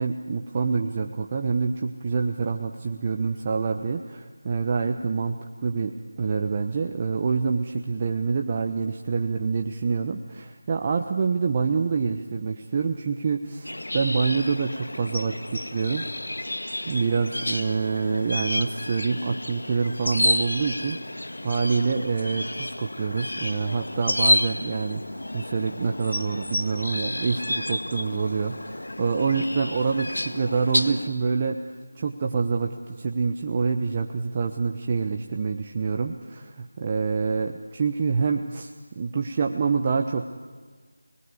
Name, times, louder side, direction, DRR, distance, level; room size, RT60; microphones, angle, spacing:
voice 1, 0.0-5.4 5.6-16.1 16.9-21.1 21.4-40.4, right 5 dB, 25° right, 3 dB, 1.0 m, -26 dB
sound 1, 13.6-31.1, left 1 dB, 80° left, 2.0 m, -30 dB
29.5 x 20.0 x 9.8 m, 1.5 s
figure-of-eight pair, 170°, 0 cm